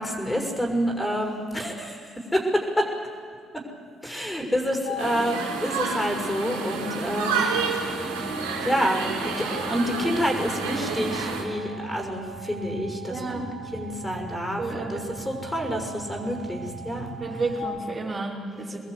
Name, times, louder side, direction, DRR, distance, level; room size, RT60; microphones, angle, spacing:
voice 1, 0.0-2.9 4.0-7.4 7.8-7.9 8.6-17.1, equal, 15° left, 2 dB, 6.3 m, -28 dB
sound 1, 4.8-17.6, right 3 dB, 85° left, 5.1 m, -42 dB
sound 2, 5.0-11.4, right 4 dB, 85° right, 3.9 m, -29 dB
sound 3, 7.5-17.6, right 1 dB, 60° right, 3.7 m, -44 dB
voice 2, 13.1-13.5 14.6-15.0 17.2-18.8, right 3 dB, 40° right, -4 dB, 5.2 m, -31 dB
25.0 x 20.5 x 8.3 m, 2.1 s
hypercardioid pair, 45°, 0 cm